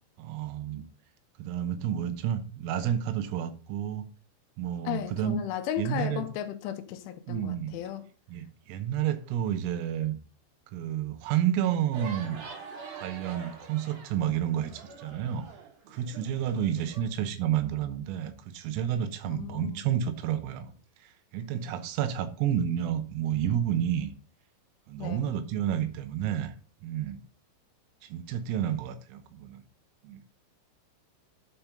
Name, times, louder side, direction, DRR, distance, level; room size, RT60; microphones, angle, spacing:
voice 1, 0.2-0.8 1.4-4.1 4.6-5.4 5.8-6.3 7.3-7.7 8.3-10.2 10.7-12.4 13.0-15.5 15.9-20.7 21.3-24.1 24.9-26.5 26.8-27.2 28.0-29.6 30.0-30.2, right 10 dB, 80° right, 3.6 m, -30 dB
voice 2, 4.9-8.1 19.3-19.9 25.0-25.3, left 11 dB, 85° left, 2.9 m, -35 dB
sound 1, 11.9-17.0, right 6 dB, 55° right, 3.0 m, -45 dB
11.5 x 5.3 x 3.8 m
omnidirectional pair, 6.0 m